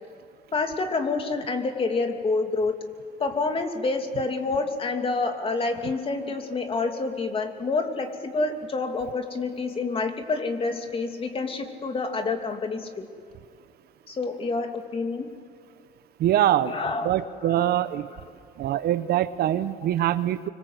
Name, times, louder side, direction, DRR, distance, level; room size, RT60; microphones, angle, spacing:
voice 1, 0.5-2.8 3.2-13.1 14.1-15.3 16.6-17.1 17.4-17.6 18.1-18.2, left 3 dB, 35° left, 5 dB, 2.8 m, -28 dB
voice 2, 16.2-16.7 17.0-18.1 18.6-20.5, right 12 dB, 65° right, 13 dB, 0.9 m, -23 dB
26.0 x 24.5 x 8.1 m, 2.3 s
cardioid pair, 110°, 17 cm